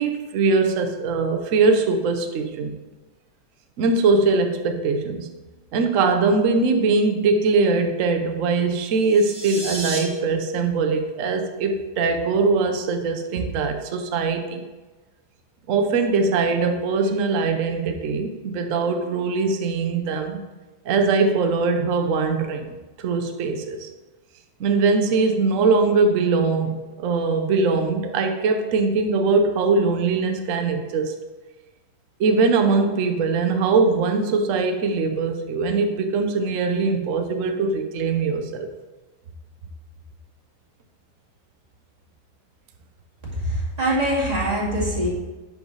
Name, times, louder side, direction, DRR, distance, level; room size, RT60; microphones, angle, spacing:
voice 1, 0.0-2.7 3.8-5.3 5.7-14.6 15.7-20.4 20.9-22.7 23.0-23.9 24.6-31.1 32.2-38.7, right 4 dB, 65° right, 6 dB, 0.8 m, -21 dB
sound 1, 8.9-10.0, right 2 dB, 40° right, 1.7 m, -32 dB
voice 2, 43.3-45.1, right 1 dB, 20° right, -6 dB, 2.1 m, -23 dB
10.5 x 5.2 x 3.2 m, 1.2 s
omnidirectional pair, 2.2 m